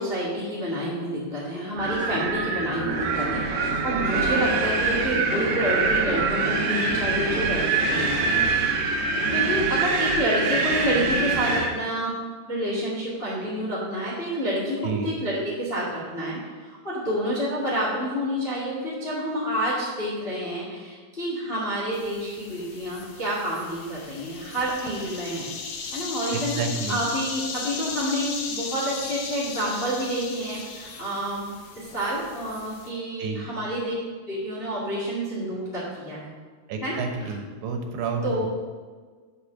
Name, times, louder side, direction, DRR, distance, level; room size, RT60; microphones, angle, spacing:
voice 1, 0.0-8.4 9.3-12.2 12.4-25.5 25.9-26.5 26.9-31.5 31.7-33.9 34.3-36.3 36.8-37.3 38.2-38.4, equal, 35° left, -6 dB, 0.9 m, -28 dB
Wind, 1.8-11.7, right 4 dB, 75° right, 2.8 m, -24 dB
sound 1, 21.9-32.9, left 4 dB, 90° left, 1.5 m, -36 dB
voice 2, 26.3-27.0 33.2-33.5 36.7-38.5, right 4 dB, 90° right, 4 dB, 3.0 m, -30 dB
6.7 x 5.8 x 7.1 m, 1.5 s
omnidirectional pair, 4.5 m